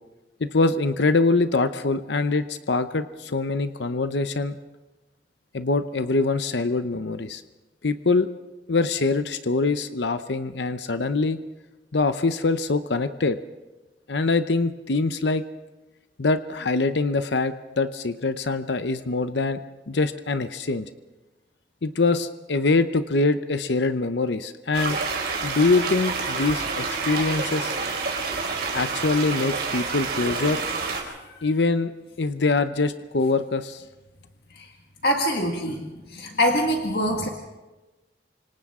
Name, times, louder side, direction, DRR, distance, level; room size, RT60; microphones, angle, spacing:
voice 1, 0.4-4.6 5.5-7.4 7.8-8.3 8.7-11.4 11.9-13.4 14.1-15.4 16.2-19.6 19.9-20.8 21.8-25.0 25.4-27.7 28.7-30.6 31.4-31.9 32.2-33.8, left 3 dB, 75° left, 10 dB, 0.8 m, -24 dB
sound 1, 24.7-31.0, right 4 dB, 60° right, 4.4 m, -28 dB
voice 2, 35.0-37.3, equal, 60° left, 1 dB, 1.8 m, -24 dB
28.5 x 26.0 x 3.7 m, 1.1 s
head